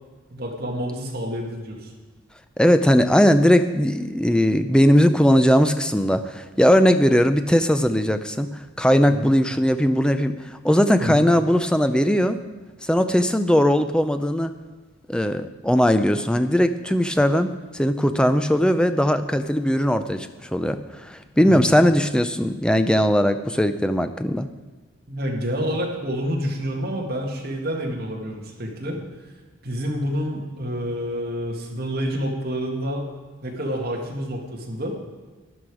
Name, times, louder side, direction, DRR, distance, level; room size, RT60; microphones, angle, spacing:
voice 1, 0.3-1.9 9.1-9.3 11.0-11.2 21.4-21.7 25.1-29.0 29.6-33.1 33.4-34.9, equal, 45° right, 0 dB, 2.0 m, -28 dB
voice 2, 2.6-8.5 8.8-12.4 12.8-14.5 15.1-24.5, equal, 5° left, 9 dB, 0.4 m, -19 dB
12.0 x 11.0 x 4.9 m, 1.3 s
head